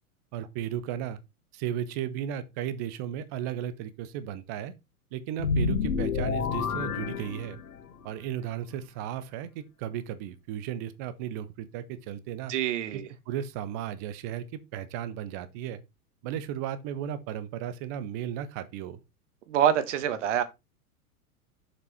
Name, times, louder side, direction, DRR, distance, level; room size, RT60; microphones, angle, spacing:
voice 1, 0.3-1.2 1.5-4.7 5.1-7.6 8.0-12.5 13.3-15.8 16.2-19.0, right 10 dB, 15° right, 0.3 m, -35 dB
sound 1, 5.4-7.9, left 5 dB, 70° left, 1.3 m, -29 dB
voice 2, 12.5-13.1 19.5-20.4, right 10 dB, 55° right, 1.5 m, -26 dB
7.0 x 5.2 x 4.6 m
figure-of-eight pair, 100°, 45 cm